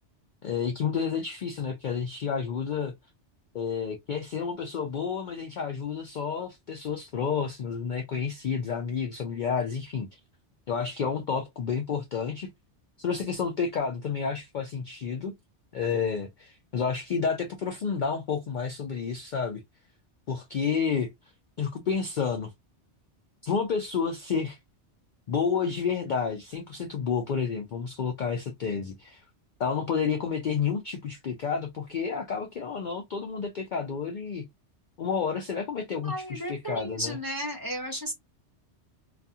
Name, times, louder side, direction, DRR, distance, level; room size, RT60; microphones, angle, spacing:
voice 1, 0.4-2.9 3.5-10.2 10.7-12.5 13.0-15.3 15.7-19.6 20.3-21.1 21.6-22.5 23.4-24.6 25.3-29.2 29.6-34.5 35.0-37.2, left 6 dB, 60° left, 0.5 m, -30 dB
voice 2, 36.0-38.1, equal, 20° right, 0.9 m, -34 dB
2.4 x 2.3 x 2.6 m
omnidirectional pair, 1.2 m